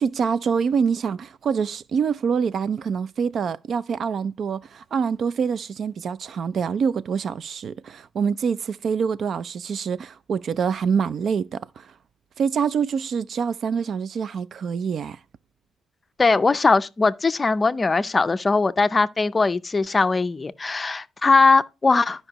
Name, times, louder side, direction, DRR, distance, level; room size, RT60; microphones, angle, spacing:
voice 1, 0.0-11.9 12.4-15.2, right 6 dB, 55° right, 0.4 m, -25 dB
voice 2, 16.2-22.3, left 3 dB, 25° left, 0.5 m, -20 dB
13.0 x 5.3 x 2.9 m
cardioid pair, 90°, 0 cm